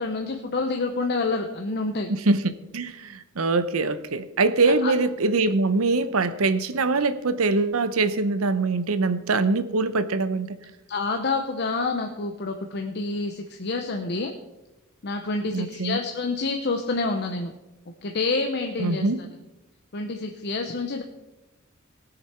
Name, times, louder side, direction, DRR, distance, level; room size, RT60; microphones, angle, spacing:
voice 1, 0.0-2.1 4.8-4.9 10.9-14.3 15.0-17.5 18.0-19.1 19.9-21.0, left 3 dB, 50° left, 4 dB, 0.8 m, -28 dB
voice 2, 2.1-10.6 15.5-16.0 18.8-19.2, right 3 dB, 85° right, 13 dB, 0.8 m, -23 dB
18.5 x 6.8 x 4.4 m, 1.0 s
head